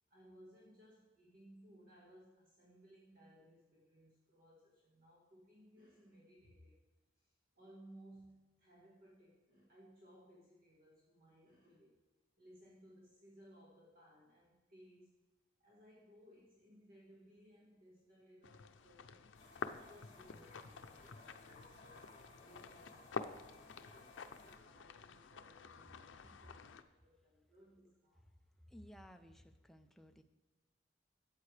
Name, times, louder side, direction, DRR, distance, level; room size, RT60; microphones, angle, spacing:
voice 1, 0.1-6.8 7.2-12.0 12.4-15.1 15.6-19.3 19.8-22.1 22.3-26.7 27.0-28.2, equal, 50° right, -4 dB, 1.6 m, -62 dB
sound 1, 18.4-26.8, left 5 dB, 90° left, 0.5 m, -49 dB
sound 2, 19.3-24.6, left 2 dB, 40° left, 2.1 m, -60 dB
voice 2, 28.7-30.2, equal, ahead, 5 dB, 0.5 m, -57 dB
13.0 x 8.2 x 3.3 m, 1.1 s
head